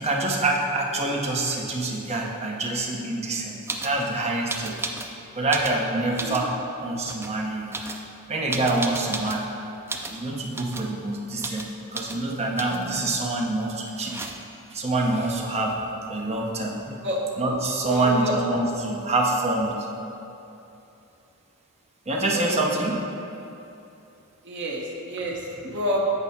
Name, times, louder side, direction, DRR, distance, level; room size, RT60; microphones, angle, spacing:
voice 1, 0.0-3.5 3.8-4.8 5.3-6.5 6.8-7.7 8.3-9.5 10.1-14.2 14.7-15.8 16.1-16.8 17.4-19.7 22.1-23.0, right 2 dB, 30° right, -1 dB, 0.8 m, -26 dB
sound 1, 3.7-4.0 4.5-5.1 5.4-6.5 7.0-7.3 7.7-9.5 9.9-10.2 10.5-10.9 11.4-11.7 11.9-12.2 12.6-12.9 13.9-14.6 16.4-16.5 16.7-17.3, right 3 dB, 10° right, 0.3 m, -34 dB
voice 2, 6.1-6.5 17.0-17.2 17.8-18.4 22.3-22.5 24.4-26.0, equal, 55° right, -2 dB, 1.1 m, -29 dB
8.2 x 4.7 x 4.2 m, 2.8 s
head